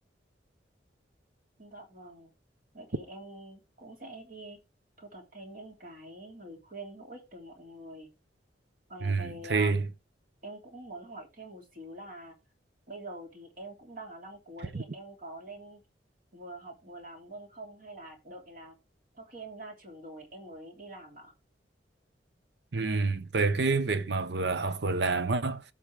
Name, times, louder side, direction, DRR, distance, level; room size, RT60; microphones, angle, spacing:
voice 1, 1.6-2.3 2.7-4.6 5.0-8.1 8.9-9.7 10.4-12.3 12.9-15.8 16.3-18.7 19.1-21.3, right 1 dB, 50° right, 2.9 m, -45 dB
voice 2, 9.0-9.9 14.7-14.8 22.7-25.6, right 3 dB, 65° right, 0.8 m, -28 dB
15.0 x 5.5 x 3.5 m
head